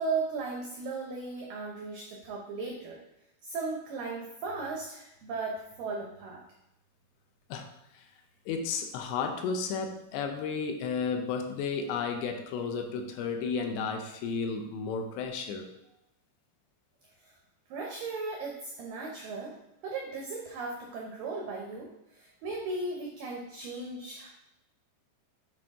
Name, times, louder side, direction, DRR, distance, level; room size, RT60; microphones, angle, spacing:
voice 1, 0.0-3.0 3.4-6.4 17.2-17.3 17.7-19.6 19.8-24.3, right 3 dB, 85° right, 0 dB, 1.9 m, -36 dB
voice 2, 8.5-15.7, left 5 dB, 80° left, 4 dB, 2.9 m, -33 dB
8.5 x 4.6 x 3.6 m, 0.86 s
omnidirectional pair, 5.1 m